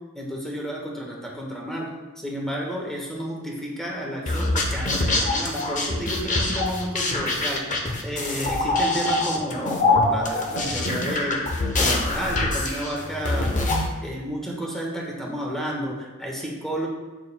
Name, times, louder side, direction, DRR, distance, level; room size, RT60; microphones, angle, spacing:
voice 1, 0.1-1.9 2.2-7.6 8.0-11.4 11.8-13.6 14.0-16.9, right 1 dB, ahead, -3 dB, 1.3 m, -31 dB
sound 1, 4.3-13.9, left 2 dB, 35° left, 0.8 m, -24 dB
8.4 x 6.7 x 2.2 m, 1.2 s
head